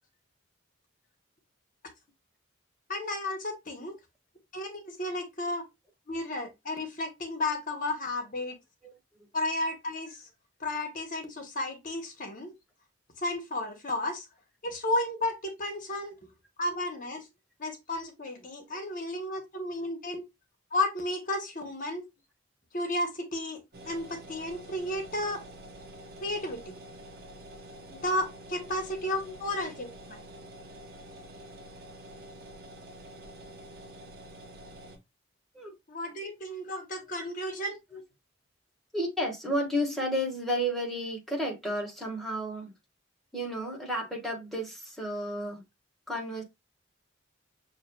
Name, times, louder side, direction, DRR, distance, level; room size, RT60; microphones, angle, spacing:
voice 1, 2.9-3.9 4.5-5.6 6.1-8.6 9.3-10.2 10.6-12.5 13.2-14.2 14.6-16.1 16.6-17.2 17.6-20.2 20.7-22.0 22.7-25.4 26.2-26.7 27.9-30.2 35.9-37.8, left 1 dB, 45° left, 0.9 m, -33 dB
sound 1, 23.7-35.0, right 1 dB, 50° right, 0.8 m, -47 dB
voice 2, 29.2-29.7 35.5-35.7 37.9-38.0 38.9-42.7 43.3-45.6 46.1-46.4, equal, ahead, 1.3 m, -32 dB
6.2 x 2.6 x 2.2 m
head